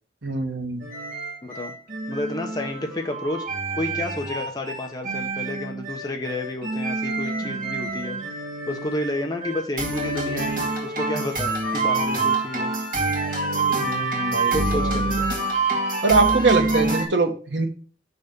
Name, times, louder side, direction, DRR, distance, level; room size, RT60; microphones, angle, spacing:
voice 1, 0.2-0.8 13.8-15.0 16.0-17.7, right 3 dB, 80° right, 4 dB, 1.5 m, -23 dB
sound 1, 0.8-17.0, right 3 dB, 45° right, 2.3 m, -26 dB
voice 2, 1.4-1.7 2.1-8.2 8.7-12.7 14.5-15.3, left 1 dB, 20° left, 2 dB, 1.1 m, -31 dB
6.5 x 4.2 x 5.4 m, 0.39 s
head